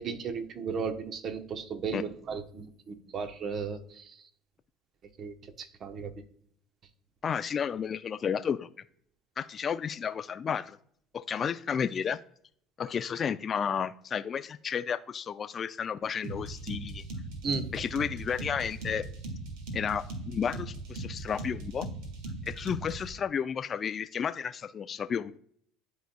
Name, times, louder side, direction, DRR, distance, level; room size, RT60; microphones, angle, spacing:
voice 1, 0.0-4.2 5.2-6.1 17.4-17.6, right 5 dB, 45° right, 7 dB, 1.0 m, -35 dB
voice 2, 7.2-8.7 9.4-10.8 11.1-12.2 12.8-17.0 17.7-19.1 19.7-21.9 22.5-25.4, left 7 dB, 40° left, 11 dB, 0.4 m, -32 dB
sound 1, 16.2-23.1, right 2 dB, 70° right, 1.5 m, -39 dB
11.5 x 4.0 x 2.2 m, 0.64 s
hypercardioid pair, 75°, 0 cm